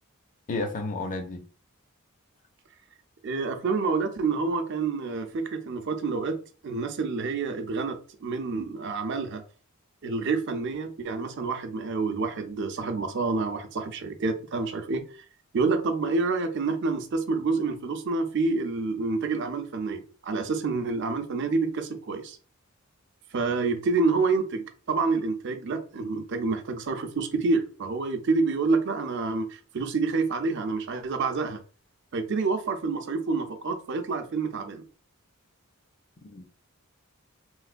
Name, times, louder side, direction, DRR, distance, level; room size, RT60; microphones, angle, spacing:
voice 1, 0.5-1.4 36.2-36.4, left 2 dB, 35° left, 0.5 m, -31 dB
voice 2, 3.2-6.4 6.6-9.4 10.0-15.2 15.5-22.4 23.3-31.6 32.1-34.8, right 4 dB, 55° right, 0.5 m, -28 dB
3.1 x 2.9 x 2.5 m
head